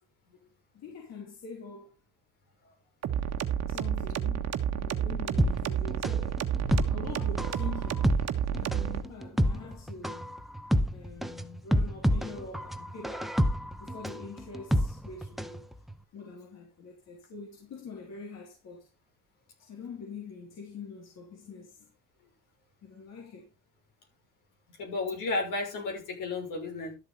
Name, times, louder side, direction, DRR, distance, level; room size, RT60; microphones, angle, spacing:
voice 1, 0.7-1.9 3.7-6.6 6.9-8.2 8.5-10.4 10.9-13.5 13.8-15.6 16.1-18.9 19.6-21.9 22.8-23.5, left 4 dB, 50° left, 3.6 m, -44 dB
sound 1, 3.0-9.0, right 9 dB, 50° right, 1.5 m, -30 dB
sound 2, 5.4-15.6 15.9-16.0, equal, ahead, 0.9 m, -28 dB
voice 2, 24.8-27.0, left 3 dB, 65° left, 6.2 m, -33 dB
12.5 x 7.7 x 4.1 m
cardioid pair, 130°, 34 cm